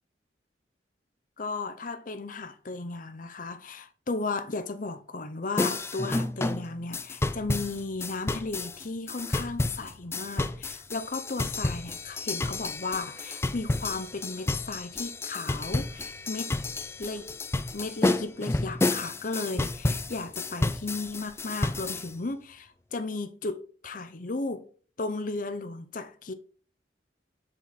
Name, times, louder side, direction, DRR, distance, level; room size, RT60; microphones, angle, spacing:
voice 1, 1.4-16.5 17.0-17.3 17.7-24.6 25.0-26.3, left 3 dB, 50° left, 0.7 m, -35 dB
sound 1, 5.6-22.1, left 2 dB, 15° left, 0.3 m, -31 dB
8.1 x 4.5 x 4.1 m
head